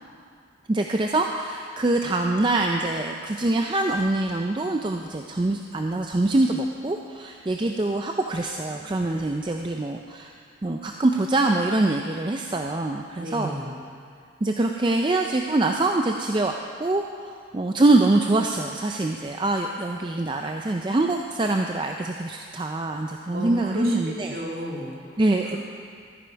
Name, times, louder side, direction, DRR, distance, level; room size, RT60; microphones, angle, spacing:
voice 1, 0.7-10.3 10.6-13.5 14.4-16.5 16.8-24.3 25.2-25.6, right 2 dB, 25° right, 3 dB, 0.4 m, -24 dB
voice 2, 13.2-13.8 23.3-25.6, equal, 50° right, -3 dB, 2.1 m, -34 dB
13.5 x 10.5 x 4.6 m, 2.2 s
head